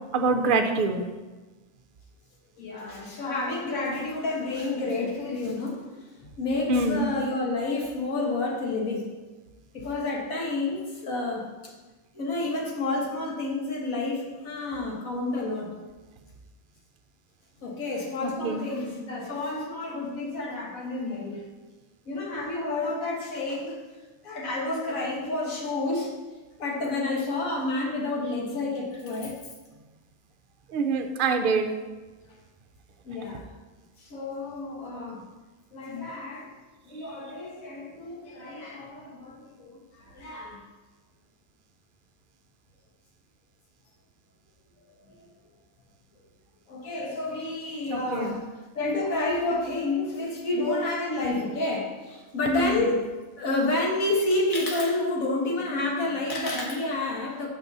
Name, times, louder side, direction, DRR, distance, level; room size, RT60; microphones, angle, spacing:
voice 1, 0.1-1.0 6.7-7.1 18.2-18.7 30.7-31.7 47.9-48.4 52.5-52.8, right 3 dB, 50° right, 6 dB, 0.7 m, -25 dB
voice 2, 2.6-5.9 6.4-9.1 9.7-11.7 12.1-15.7 17.6-21.4 22.1-23.8 24.2-26.1 26.6-29.4 33.0-33.5 34.0-35.3 35.7-36.5 36.9-40.6 45.2-45.3 46.7-48.4 48.8-53.1 53.4-57.5, left 2 dB, 90° left, -1 dB, 1.8 m, -29 dB
6.5 x 4.1 x 6.0 m, 1.2 s
omnidirectional pair, 1.4 m